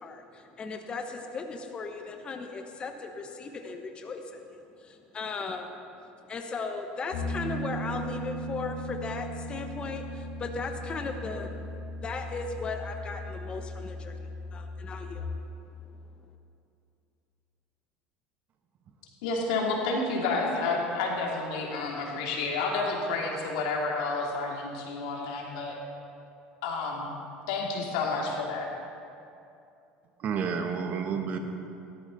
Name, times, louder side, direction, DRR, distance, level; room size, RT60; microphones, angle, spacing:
voice 1, 0.0-4.4 4.8-5.7 6.3-11.7 12.0-14.2 14.5-15.3, left 4 dB, 30° left, 5 dB, 1.1 m, -37 dB
Piano, 7.1-15.2, equal, 65° left, 2.6 m, -37 dB
voice 2, 19.2-25.8 26.6-27.1 27.5-28.7, left 3 dB, 85° left, -2 dB, 3.0 m, -30 dB
voice 3, 30.2-31.4, right 6 dB, 45° right, 5 dB, 1.4 m, -30 dB
17.5 x 13.0 x 4.2 m, 2.6 s
supercardioid pair, 120°, 4 cm